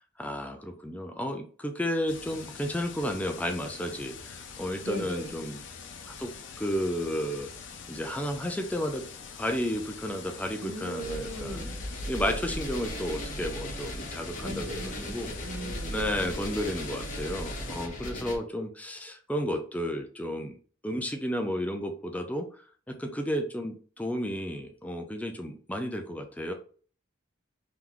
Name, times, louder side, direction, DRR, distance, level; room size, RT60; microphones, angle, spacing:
voice 1, 0.2-5.6 6.2-6.3 6.6-7.5 7.9-9.0 9.4-11.7 12.1-15.3 15.9-20.6 20.8-22.5 22.9-26.5, equal, 10° left, 4 dB, 0.5 m, -32 dB
sound 1, 2.1-17.9, left 6 dB, 70° left, 0.6 m, -45 dB
voice 2, 4.7-5.4 10.6-11.7 14.4-16.1, right 1 dB, 80° right, 4 dB, 0.9 m, -39 dB
sound 2, 11.0-18.3, equal, 45° left, 1.2 m, -37 dB
3.8 x 3.0 x 3.5 m, 0.42 s
head